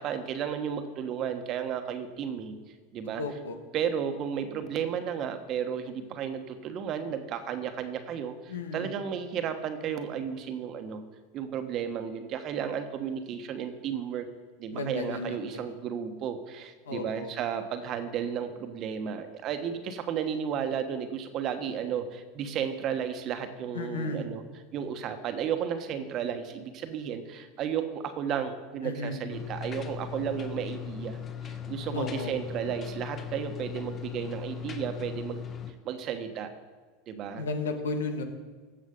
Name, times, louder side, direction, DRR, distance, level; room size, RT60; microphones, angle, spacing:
voice 1, 0.0-2.5 2.9-3.2 3.7-11.0 11.3-14.3 14.6-24.4 24.7-35.4 35.8-36.5 37.1-37.4, right 8 dB, 45° right, 8 dB, 1.3 m, -33 dB
voice 2, 3.2-3.6 8.5-8.9 14.7-15.7 16.9-17.3 23.7-24.3 28.8-29.2 31.9-32.4 37.4-38.2, left 3 dB, 85° left, 6 dB, 1.4 m, -34 dB
sound 1, 29.3-35.7, left 8 dB, 35° left, 1.2 m, -38 dB
14.5 x 6.5 x 5.3 m, 1.4 s
hypercardioid pair, 90°, 0 cm